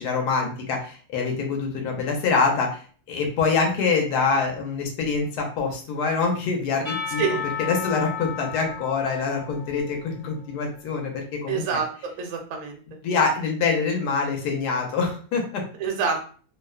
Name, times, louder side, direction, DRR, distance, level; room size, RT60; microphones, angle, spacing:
voice 1, 0.0-7.2 7.6-11.6 13.0-15.6, left 4 dB, 85° left, 1 dB, 1.2 m, -25 dB
Percussion / Church bell, 6.8-10.8, left 7 dB, 45° left, 0.6 m, -34 dB
voice 2, 11.5-12.8 15.8-16.3, right 5 dB, 70° right, 2 dB, 0.8 m, -27 dB
2.9 x 2.0 x 2.3 m, 0.42 s
omnidirectional pair, 1.7 m